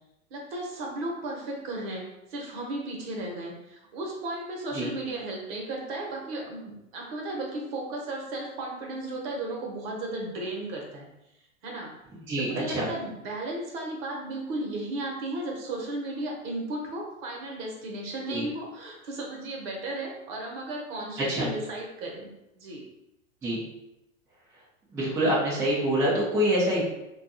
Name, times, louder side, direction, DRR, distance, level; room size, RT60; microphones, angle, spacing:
voice 1, 0.3-11.1 11.6-11.9 12.4-22.9, right 2 dB, 50° right, 0 dB, 0.9 m, -35 dB
voice 2, 12.3-12.9 18.3-18.4 21.3-21.5 23.4-23.6 24.9-26.8, equal, 5° right, -7 dB, 0.3 m, -25 dB
2.6 x 2.3 x 2.5 m, 0.89 s
hypercardioid pair, 105°, 41 cm